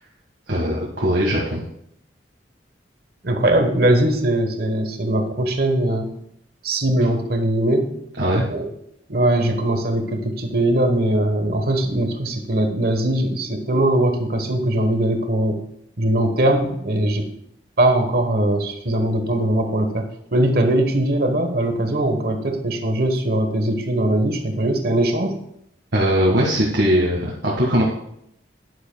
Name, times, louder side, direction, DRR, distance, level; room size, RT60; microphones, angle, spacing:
voice 1, 0.5-1.6 8.2-8.5 25.9-27.8, equal, 80° right, -4 dB, 1.7 m, -20 dB
voice 2, 3.2-6.1 6.6-7.9 8.5-8.7 9.1-15.6 16.0-17.3 17.8-20.1 20.3-25.4, right 1 dB, 55° right, 5 dB, 1.2 m, -20 dB
11.5 x 10.0 x 2.3 m, 0.74 s
head